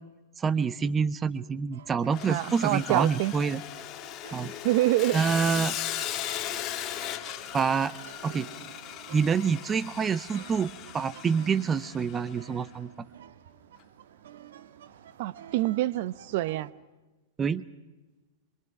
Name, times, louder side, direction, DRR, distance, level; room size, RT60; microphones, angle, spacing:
voice 1, 0.4-3.6 4.3-4.5 5.1-5.7 7.5-8.0 8.2-8.5 9.1-12.9 17.4-17.6, right 6 dB, 15° right, 16 dB, 0.7 m, -27 dB
sound 1, 1.7-16.7, right 9 dB, 70° right, 1.9 m, -50 dB
Sawing, 2.1-12.4, left 12 dB, 30° left, 1.6 m, -37 dB
voice 2, 2.3-3.3 4.6-5.2 15.2-16.7, right 16 dB, 50° right, 18 dB, 0.7 m, -26 dB
26.5 x 25.0 x 6.0 m, 1.2 s
hypercardioid pair, 145°, 0 cm